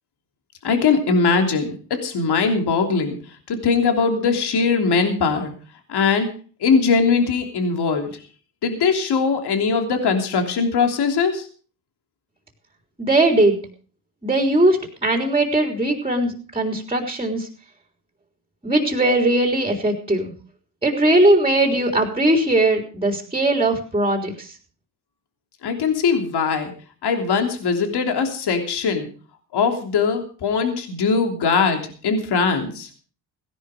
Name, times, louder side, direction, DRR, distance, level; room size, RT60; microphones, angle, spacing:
voice 1, 0.6-3.2 3.5-5.5 5.9-6.3 6.6-8.1 8.6-11.5 25.6-26.7 27.0-29.1 29.5-32.9, left 5 dB, 55° left, 5 dB, 3.2 m, -21 dB
voice 2, 13.0-13.7 14.2-17.5 18.6-20.3 20.8-24.5, right 1 dB, 10° right, 3 dB, 3.6 m, -19 dB
16.5 x 11.0 x 5.0 m, 0.41 s
supercardioid pair, 85°, 46 cm